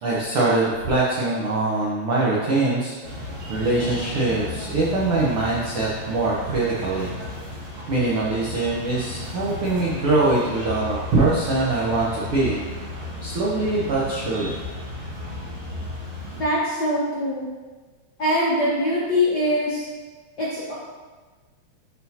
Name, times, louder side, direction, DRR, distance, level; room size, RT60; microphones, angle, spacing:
voice 1, 0.0-3.2 3.5-7.1 7.9-12.6 13.2-14.6, right 2 dB, 80° right, -6 dB, 1.2 m, -23 dB
sound 1, 3.0-16.4, left 1 dB, 50° right, 2.3 m, -34 dB
voice 2, 16.4-17.5 18.2-19.8 20.4-20.7, left 1 dB, 85° left, -8 dB, 0.9 m, -23 dB
11.0 x 4.3 x 2.8 m, 1.4 s
omnidirectional pair, 3.8 m